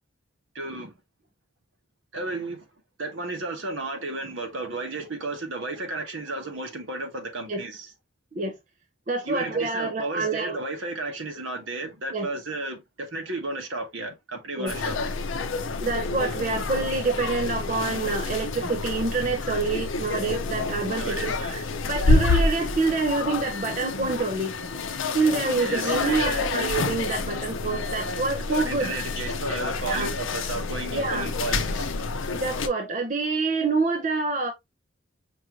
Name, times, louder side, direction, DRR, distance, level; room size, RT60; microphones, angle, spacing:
voice 1, 0.5-0.9 2.1-2.7 3.0-7.9 9.2-15.2 21.0-21.3 25.5-26.5 28.5-31.9, right 2 dB, 75° right, 1.2 m, -33 dB
voice 2, 9.1-10.6 12.1-12.3 14.6-14.7 15.8-24.6 25.1-29.0 29.9-30.1 30.9-31.3 32.3-34.5, right 3 dB, 40° right, 0.6 m, -27 dB
sound 1, 14.7-32.7, left 3 dB, 80° left, 0.6 m, -28 dB
5.3 x 2.5 x 2.9 m
head